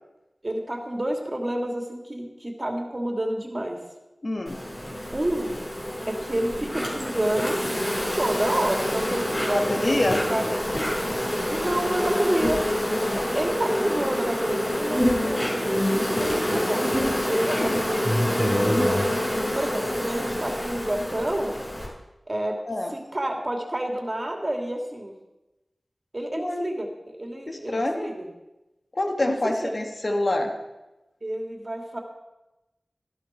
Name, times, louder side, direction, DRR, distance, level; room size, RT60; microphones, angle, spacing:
voice 1, 0.4-3.8 5.1-5.6 6.1-7.6 8.2-10.4 11.5-12.6 13.1-19.0 19.5-21.6 22.3-22.6 23.1-25.1 26.1-28.3 29.2-29.8 31.2-32.0, right 1 dB, 35° right, 2 dB, 2.8 m, -29 dB
voice 2, 4.2-4.6 9.5-10.2 17.6-17.8 22.7-22.9 26.3-26.7 27.5-28.1 28.9-30.5, left 1 dB, 55° left, 3 dB, 1.8 m, -26 dB
Insect, 4.5-21.9, equal, 25° left, 5.8 m, -26 dB
13.5 x 12.0 x 4.6 m, 1.0 s
cardioid pair, 40°, 0 cm